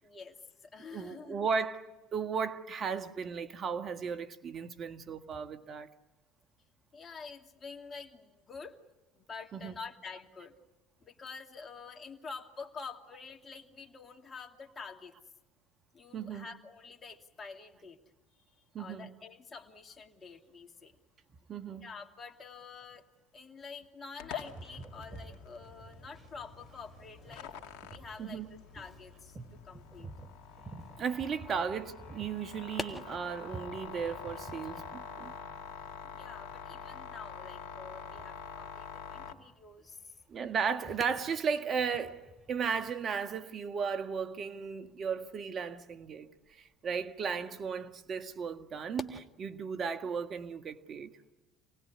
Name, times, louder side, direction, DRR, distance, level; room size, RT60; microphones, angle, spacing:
voice 1, 0.0-1.5 6.9-8.8 9.1-10.5 11.0-15.1 15.9-18.0 18.8-20.9 21.7-23.0 23.3-27.5 27.8-28.4 28.7-30.1 31.4-31.7 36.0-40.2 41.6-41.7, left 5 dB, 35° left, 2.5 m, -48 dB
voice 2, 0.8-5.9 9.5-9.7 16.1-16.5 18.7-19.2 21.5-21.9 28.2-28.5 31.0-35.3 40.3-42.2 42.5-46.3 46.6-51.1, right 6 dB, 45° right, 1.8 m, -35 dB
sound 1, 24.2-39.3, left 7 dB, 70° left, 2.2 m, -46 dB
Boat Water vehicle, 24.3-43.3, right 3 dB, 30° right, 2.8 m, -53 dB
sound 2, 39.6-49.2, left 1 dB, 10° left, 1.7 m, -51 dB
28.0 x 19.0 x 9.7 m
hypercardioid pair, 75°, 0 cm